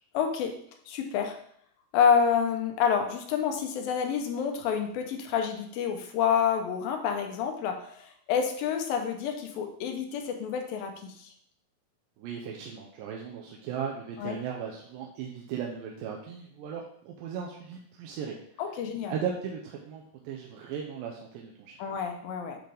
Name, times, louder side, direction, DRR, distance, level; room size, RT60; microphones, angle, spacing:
voice 1, 0.1-0.5 0.9-1.4 1.9-11.3 14.2-14.4 18.6-19.1 21.8-22.6, left 7 dB, 80° left, 4 dB, 2.5 m, -28 dB
voice 2, 12.2-18.4 19.1-21.8, right 7 dB, 80° right, -1 dB, 2.3 m, -37 dB
7.8 x 3.8 x 3.4 m, 0.63 s
omnidirectional pair, 4.2 m